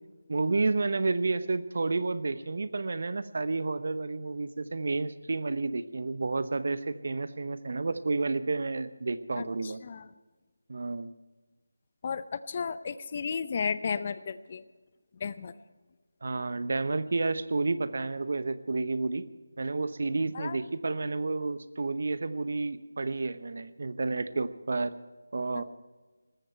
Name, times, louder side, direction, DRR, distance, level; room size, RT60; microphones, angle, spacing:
voice 1, 0.3-9.8 10.7-11.1 16.2-19.3 19.6-24.9 25.3-25.6, right 3 dB, 55° right, 14 dB, 0.9 m, -30 dB
voice 2, 9.4-10.1 12.0-14.6 15.2-15.5 20.3-20.6 25.5-25.6, left 6 dB, 35° left, 14 dB, 0.7 m, -34 dB
19.5 x 14.5 x 4.5 m, 1.3 s
figure-of-eight pair, 160°, 0 cm